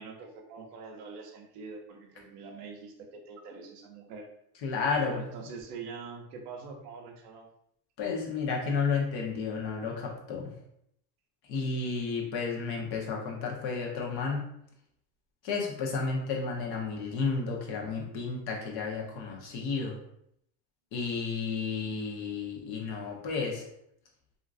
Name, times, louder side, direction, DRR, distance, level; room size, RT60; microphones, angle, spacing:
voice 1, 0.0-4.3 5.0-7.5, right 4 dB, 85° right, 2 dB, 0.7 m, -44 dB
voice 2, 4.6-5.3 8.0-10.5 11.4-14.5 15.4-20.0 20.9-23.6, left 4 dB, 55° left, -1 dB, 1.0 m, -32 dB
2.8 x 2.5 x 2.4 m, 0.74 s
supercardioid pair, 90°, 45 cm